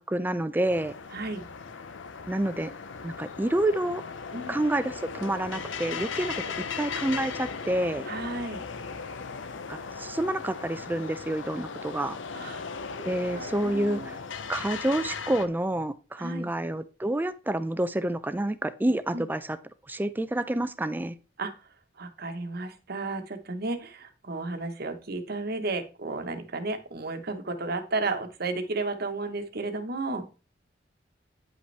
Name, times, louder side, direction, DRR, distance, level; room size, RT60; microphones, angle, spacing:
voice 1, 0.0-0.9 2.3-2.7 3.0-4.0 4.5-6.3 6.8-8.1 9.7-12.2 13.1-14.2 14.5-19.6 19.9-21.1, right 1 dB, 10° right, 0.4 m, -28 dB
sound 1, 0.7-15.5, left 5 dB, 80° left, 0.7 m, -37 dB
voice 2, 1.1-1.4 4.3-4.6 8.1-8.6 12.3-14.1 16.2-16.5 19.1-19.3 21.4-21.5 22.0-30.3, right 3 dB, 55° right, 1.1 m, -33 dB
9.5 x 5.2 x 3.3 m
head